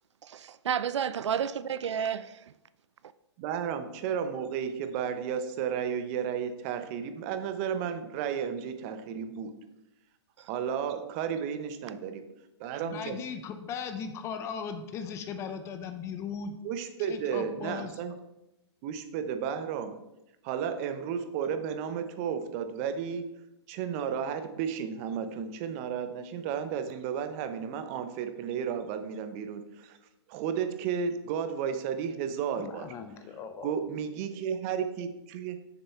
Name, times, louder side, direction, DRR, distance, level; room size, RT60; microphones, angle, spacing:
voice 1, 0.2-2.4 10.4-10.5, right 8 dB, 80° right, 0.5 m, -31 dB
voice 2, 3.4-9.7 10.5-12.3 12.6-13.2 16.6-18.1 18.8-20.0 20.4-23.4 23.7-30.0 30.3-32.9 33.6-35.7, right 7 dB, 30° right, 0.7 m, -33 dB
voice 3, 12.8-16.5 17.1-18.0 32.6-33.8, left 6 dB, 20° left, 0.6 m, -38 dB
6.8 x 6.7 x 4.4 m
hypercardioid pair, 145°, 15 cm